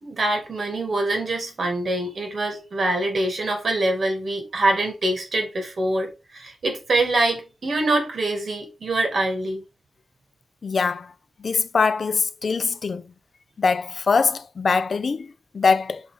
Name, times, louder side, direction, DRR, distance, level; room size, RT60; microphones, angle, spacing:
voice 1, 0.0-9.6, right 2 dB, 65° right, 2.4 m, -24 dB
voice 2, 10.6-11.1 11.4-13.0 13.6-16.0, left 5 dB, 60° left, 0.6 m, -22 dB
6.0 x 4.0 x 5.1 m
wide cardioid pair, 130°, 0 cm